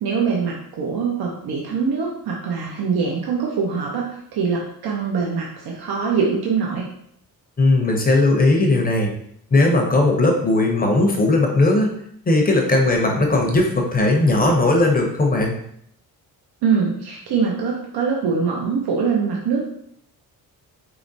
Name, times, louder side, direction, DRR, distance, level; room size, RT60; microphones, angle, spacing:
voice 1, 0.0-6.8 16.6-19.6, right 5 dB, 70° right, -2 dB, 0.8 m, -23 dB
voice 2, 7.6-9.1 9.5-11.9 12.3-15.6, left 2 dB, 25° left, 1 dB, 0.6 m, -17 dB
4.8 x 3.0 x 2.6 m, 0.70 s
cardioid pair, 150°, 38 cm